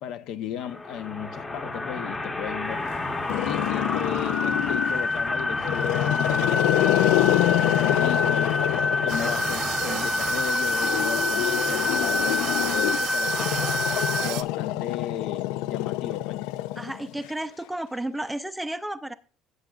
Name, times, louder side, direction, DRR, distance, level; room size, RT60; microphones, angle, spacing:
voice 1, 0.0-2.8 3.4-8.7 9.0-13.5 14.2-16.4, left 10 dB, 60° left, 0.9 m, -35 dB
sound 1, 0.6-14.3, left 3 dB, 15° left, 1.1 m, -27 dB
Growling, 3.3-5.0 5.6-9.7 10.7-17.2, left 16 dB, 90° left, 0.4 m, -26 dB
sound 2, 9.1-14.4, right 14 dB, 65° right, 0.8 m, -33 dB
voice 2, 16.8-19.1, right 1 dB, 5° right, 0.5 m, -32 dB
16.5 x 8.1 x 2.4 m
cardioid pair, 160°, 0 cm